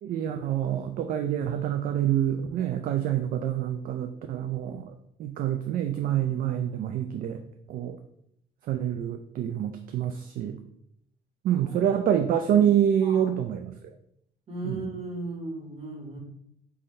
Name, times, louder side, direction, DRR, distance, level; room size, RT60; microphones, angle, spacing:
voice 1, 0.0-4.9 5.2-7.4 7.7-8.0 8.7-10.6 11.4-13.7 14.6-14.8, right 10 dB, 55° right, 7 dB, 0.4 m, -26 dB
voice 2, 13.0-13.4 14.5-16.2, right 2 dB, 35° right, 0 dB, 1.4 m, -36 dB
5.5 x 2.6 x 3.2 m, 0.73 s
cardioid pair, 110°, 17 cm